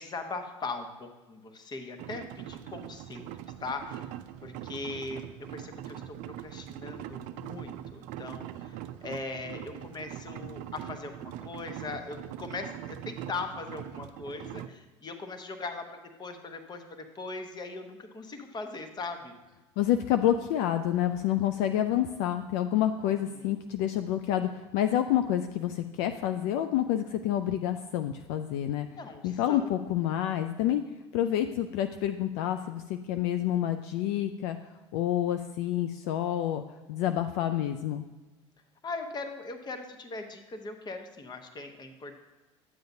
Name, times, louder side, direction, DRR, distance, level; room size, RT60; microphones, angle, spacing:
voice 1, 0.0-3.3 3.6-4.1 4.4-5.2 5.5-19.3 23.3-23.5 29.0-29.9 31.3-31.5 38.8-42.2, left 3 dB, 25° left, 7 dB, 1.0 m, -40 dB
sound 1, 2.0-14.7, right 12 dB, 55° right, 0.4 m, -42 dB
voice 2, 19.8-28.9 29.2-30.8 31.1-34.6 34.9-36.6 36.9-38.1, left 11 dB, 60° left, 8 dB, 0.4 m, -28 dB
9.5 x 7.8 x 2.7 m, 1.2 s
hypercardioid pair, 75°, 16 cm